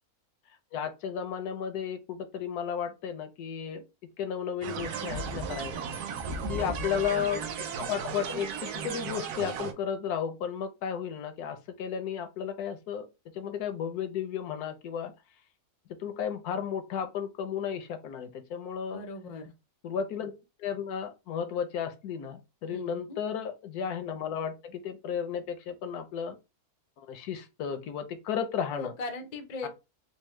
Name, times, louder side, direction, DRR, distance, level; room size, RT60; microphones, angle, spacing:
voice 1, 0.7-3.8 4.2-5.9 6.5-13.1 13.3-15.1 16.0-19.0 19.8-20.3 20.6-26.4 27.0-28.9 29.6-29.7, left 8 dB, 80° left, 1.2 m, -34 dB
sound 1, 4.6-9.7, right 5 dB, 85° right, 1.2 m, -35 dB
voice 2, 6.3-6.8 18.9-19.5 22.6-23.2 28.7-29.7, left 3 dB, 60° left, 0.4 m, -39 dB
4.3 x 2.0 x 3.1 m
omnidirectional pair, 1.6 m